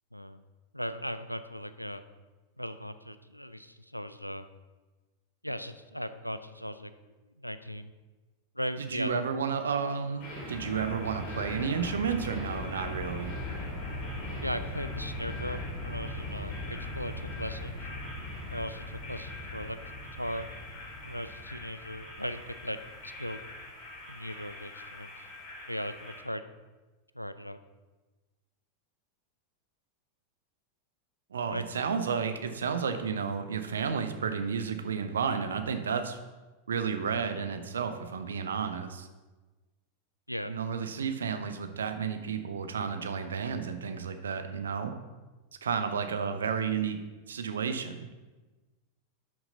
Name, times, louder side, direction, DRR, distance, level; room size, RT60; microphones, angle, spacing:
voice 1, 0.1-0.4 0.7-2.0 2.6-4.5 5.4-6.9 7.4-7.9 8.5-9.2 14.4-17.9 18.5-19.8 20.2-20.5 21.0-22.8 23.0-23.4 24.1-25.2 25.7-26.4 27.1-27.6 31.5-31.6 40.3-40.5, equal, 90° left, 12 dB, 0.4 m, -38 dB
voice 2, 8.8-13.3 31.3-36.2 36.7-39.1 40.5-44.9 45.6-47.0 47.3-48.0, right 6 dB, 70° right, 8 dB, 0.8 m, -32 dB
sound 1, 10.2-26.2, left 1 dB, 40° left, 2.5 m, -39 dB
12.0 x 6.0 x 3.9 m, 1.2 s
figure-of-eight pair, 90°, 0 cm